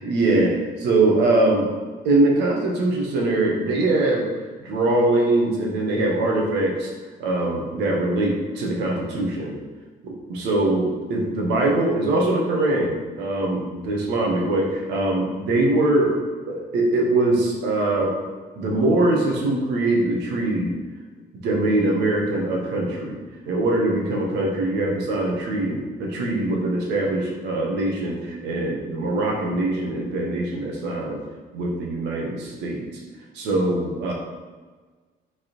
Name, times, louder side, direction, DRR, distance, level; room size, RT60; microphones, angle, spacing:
voice 1, 0.0-1.7 2.0-4.2 4.6-6.9 7.2-9.5 10.0-16.2 16.5-18.2 18.6-20.7 21.4-23.2 23.5-31.2 31.5-32.8 33.3-34.1, right 2 dB, 85° right, -1 dB, 1.5 m, -22 dB
5.4 x 4.2 x 4.4 m, 1.4 s
cardioid pair, 110°, 17 cm